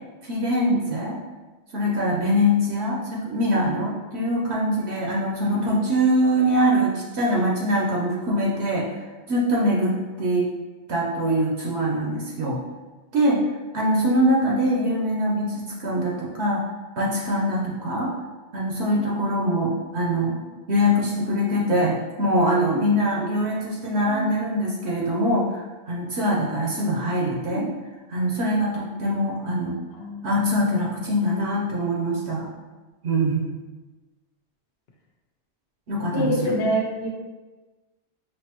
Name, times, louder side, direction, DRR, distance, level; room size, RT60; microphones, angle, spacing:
voice 1, 0.2-1.2 1.7-8.9 9.3-10.5 10.9-12.6 13.1-13.4 13.7-16.6 17.0-18.1 18.5-20.4 20.7-27.7 28.1-29.8 30.2-32.5 33.0-33.5 35.9-36.5, equal, 75° right, -3 dB, 1.0 m, -23 dB
voice 2, 18.9-19.3 20.1-20.4 24.1-24.4 27.4-27.7 29.9-30.2 36.1-37.1, equal, 65° left, 0 dB, 0.9 m, -28 dB
5.3 x 2.6 x 2.9 m, 1.2 s
omnidirectional pair, 1.1 m